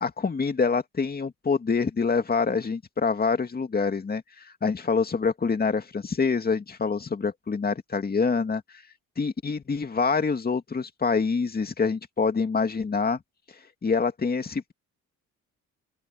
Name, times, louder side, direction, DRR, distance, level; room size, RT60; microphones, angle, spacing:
voice 1, 0.0-8.6 9.2-13.2 13.8-14.7, left 5 dB, 30° left, 2.3 m, -26 dB
open air
cardioid pair, 90°, 30 cm